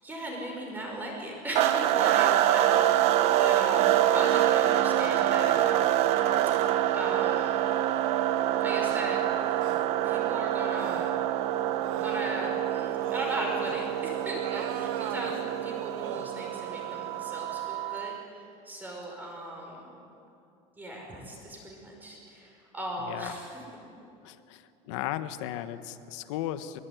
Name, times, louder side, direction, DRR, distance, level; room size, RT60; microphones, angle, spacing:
voice 1, 0.0-6.0 6.9-7.6 8.6-9.2 10.0-11.1 12.0-18.1 18.6-19.9 20.8-23.5, right 1 dB, 10° right, 0 dB, 5.5 m, -37 dB
sound 1, 1.6-18.2, right 12 dB, 45° right, 1.0 m, -26 dB
sound 2, 8.9-9.0 9.6-9.9 10.8-11.2 11.8-12.4 13.0-13.8 14.4-15.4 16.0-16.3, right 12 dB, 60° right, 1.3 m, -41 dB
voice 2, 24.2-26.8, left 13 dB, 90° left, 11 dB, 1.4 m, -36 dB
23.0 x 22.0 x 9.5 m, 2.6 s
cardioid pair, 180°, 15 cm